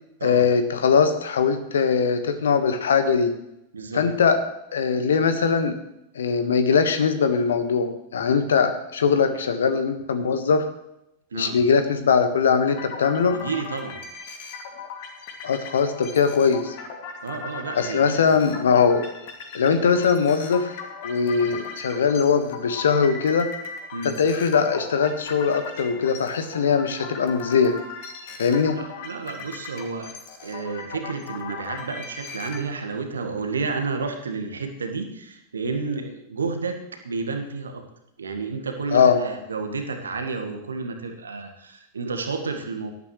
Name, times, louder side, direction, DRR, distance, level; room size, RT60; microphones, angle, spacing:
voice 1, 0.2-3.3 3.9-4.4 4.7-5.7 6.1-10.7 11.3-13.4 15.4-16.7 17.7-19.0 19.5-20.7 21.0-23.5 24.0-27.8 28.4-28.8 38.9-39.2, left 6 dB, 65° left, 9 dB, 1.4 m, -21 dB
voice 2, 3.7-4.1 11.3-11.6 13.3-14.0 17.2-18.3 21.3-21.5 23.9-24.2 28.7-30.1 30.4-37.8 38.2-42.9, right 4 dB, 70° right, 5 dB, 1.6 m, -31 dB
sound 1, 12.7-32.6, left 5 dB, 50° left, 2.4 m, -38 dB
18.0 x 12.5 x 3.2 m, 0.83 s
figure-of-eight pair, 90°, 0 cm